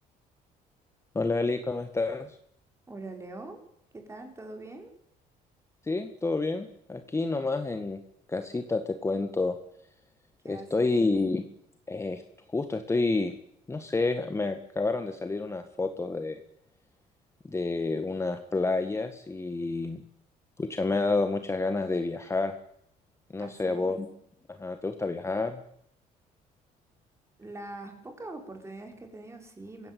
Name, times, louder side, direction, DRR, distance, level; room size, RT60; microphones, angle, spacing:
voice 1, 1.2-2.4 5.8-8.0 8.3-9.6 10.5-11.4 11.9-12.2 12.5-13.3 13.7-16.4 17.5-20.0 20.6-22.6 23.3-24.1 24.5-25.6, left 3 dB, 15° left, 8 dB, 1.8 m, -29 dB
voice 2, 2.9-3.6 3.9-4.9 10.4-10.9 23.4-24.0 27.4-29.9, right 2 dB, 15° right, 4 dB, 5.9 m, -43 dB
24.0 x 16.0 x 9.5 m, 0.71 s
cardioid pair, 105°, 16 cm